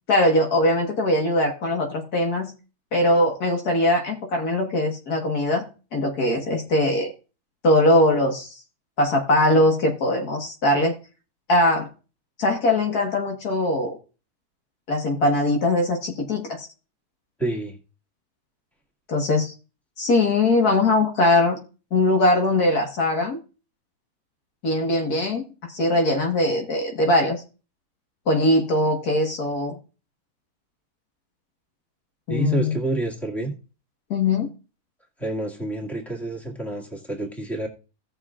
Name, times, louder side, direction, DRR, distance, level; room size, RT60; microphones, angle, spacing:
voice 1, 0.1-2.5 2.9-5.6 5.9-7.1 7.6-8.5 9.0-10.9 11.5-11.9 12.4-14.0 14.9-16.7 19.1-19.5 20.0-21.6 21.9-23.4 24.6-27.4 28.3-29.7 32.3-32.7 34.1-34.5, left 1 dB, 70° left, 2 dB, 2.0 m, -21 dB
voice 2, 17.4-17.8 32.3-33.5 35.2-37.7, right 2 dB, ahead, 0 dB, 1.8 m, -28 dB
17.0 x 6.5 x 2.4 m, 0.35 s
omnidirectional pair, 1.7 m